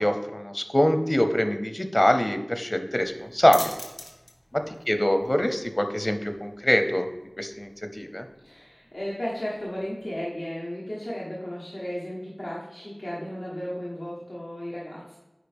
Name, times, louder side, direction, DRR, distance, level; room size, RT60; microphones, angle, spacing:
voice 1, 0.0-3.8 4.5-7.1 7.4-8.3, left 1 dB, 30° left, 7 dB, 0.7 m, -24 dB
sound 1, 2.9-10.2, left 1 dB, 60° left, 1.5 m, -45 dB
voice 2, 8.4-15.2, equal, 90° left, -6 dB, 1.3 m, -34 dB
9.2 x 4.5 x 3.5 m, 1.0 s
wide cardioid pair, 40°, 0 cm